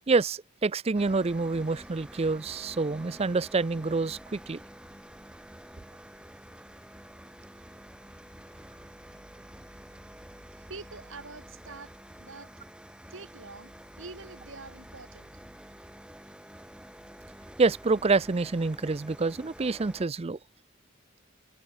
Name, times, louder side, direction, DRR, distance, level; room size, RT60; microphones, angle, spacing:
voice 1, 0.1-4.6 17.6-20.4, right 3 dB, 30° right, 0.5 m, -27 dB
sound 1, 0.9-20.1, equal, 5° right, 3.4 m, -49 dB
voice 2, 10.7-12.5 13.1-15.3, right 3 dB, 65° right, 3.0 m, -45 dB
head